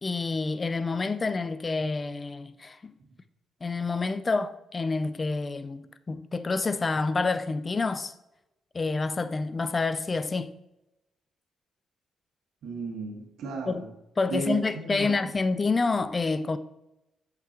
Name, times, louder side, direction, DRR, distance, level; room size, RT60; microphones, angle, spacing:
voice 1, 0.0-2.9 3.6-8.1 8.7-10.6 13.7-13.8 14.2-16.6, left 3 dB, 30° left, 0.4 m, -28 dB
voice 2, 12.6-13.9 14.2-15.1, right 4 dB, 80° right, 1.4 m, -34 dB
7.8 x 5.8 x 2.9 m
cardioid pair, 100°, 0 cm